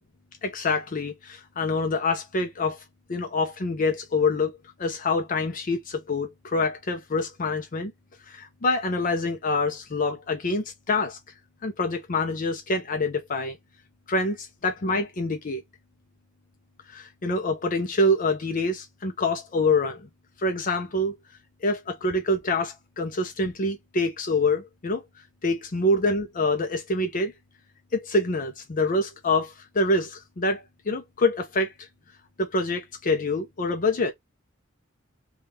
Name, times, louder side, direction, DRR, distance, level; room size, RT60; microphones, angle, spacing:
voice 1, 0.4-2.8 3.1-7.9 8.3-11.2 11.6-13.6 14.1-15.6 16.9-20.1 20.4-21.1 21.6-25.0 25.4-27.3 27.9-31.9 32.4-34.1, left 2 dB, 45° left, 0.6 m, -26 dB
3.5 x 2.3 x 2.8 m
head